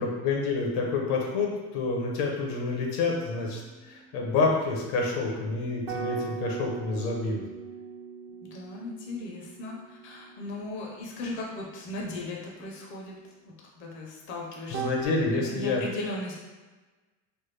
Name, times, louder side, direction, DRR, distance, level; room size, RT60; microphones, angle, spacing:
voice 1, 0.0-7.4 14.7-15.8, left 3 dB, 75° left, -1 dB, 0.8 m, -28 dB
sound 1, 2.4-4.3 5.9-13.0 14.7-15.1, right 6 dB, 40° right, 0.5 m, -41 dB
voice 2, 8.4-13.1 13.4-14.8 15.3-16.4, left 2 dB, 35° left, -2 dB, 0.5 m, -37 dB
3.3 x 2.1 x 3.2 m, 1.3 s
cardioid pair, 135°, 37 cm